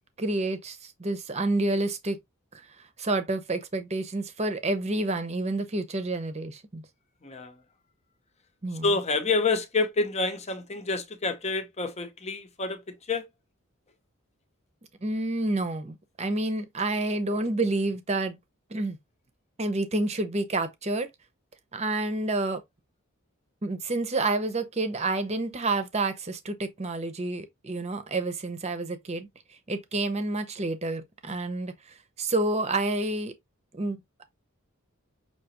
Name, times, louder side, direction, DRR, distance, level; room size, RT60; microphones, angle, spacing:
voice 1, 0.2-2.2 2.5-2.6 3.0-6.8 8.6-9.0 15.0-18.4 18.7-19.0 19.6-21.1 21.7-22.6 23.6-29.3 29.7-31.7 32.2-33.3 33.7-34.0, right 2 dB, 30° right, 0.8 m, -29 dB
voice 2, 7.2-7.5 8.8-13.2, left 3 dB, 30° left, 0.8 m, -28 dB
6.0 x 2.9 x 2.9 m
head